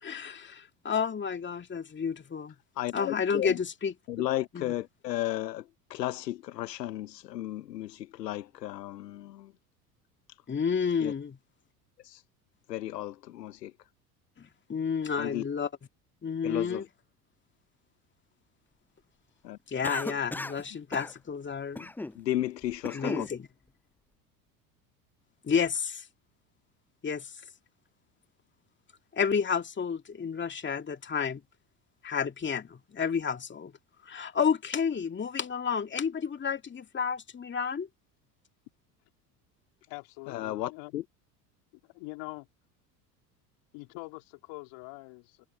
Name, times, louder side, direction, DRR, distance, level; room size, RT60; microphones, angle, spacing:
voice 1, 0.0-2.5 2.9-4.2 4.5-4.7 10.5-11.4 14.4-15.7 16.2-16.8 19.7-21.9 22.9-23.5 25.4-26.1 27.0-27.3 29.1-31.4 32.0-33.7 34.0-37.9, left 6 dB, 25° left, 2.2 m, -31 dB
voice 2, 2.8-3.6 4.1-9.5 11.0-11.1 12.0-12.2 12.7-13.7 15.2-15.4 16.4-16.9 19.4-19.6 22.1-23.3 40.3-41.0, left 14 dB, 80° left, 1.0 m, -34 dB
Cough, 19.8-20.6 20.9-21.1 21.8-22.2 22.6-23.3, left 2 dB, 5° left, 0.5 m, -35 dB
voice 3, 39.9-40.9 41.7-42.5 43.7-45.4, left 28 dB, 60° left, 4.0 m, -44 dB
hypercardioid pair, 75°, 48 cm